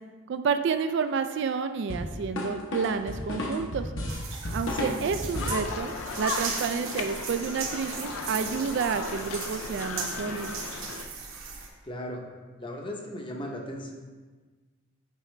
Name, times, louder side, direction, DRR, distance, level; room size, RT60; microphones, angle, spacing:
voice 1, 0.3-3.9 4.5-10.6, right 5 dB, 60° right, 9 dB, 0.3 m, -30 dB
sound 1, 1.9-5.7, left 1 dB, 65° left, 1.0 m, -33 dB
sound 2, 4.1-11.7, right 5 dB, 75° right, 1.1 m, -37 dB
sound 3, 5.3-11.0, left 4 dB, 80° left, 0.5 m, -36 dB
voice 2, 11.8-12.2 12.6-13.9, equal, 25° left, 1 dB, 0.7 m, -36 dB
8.3 x 4.8 x 3.2 m, 1.4 s
head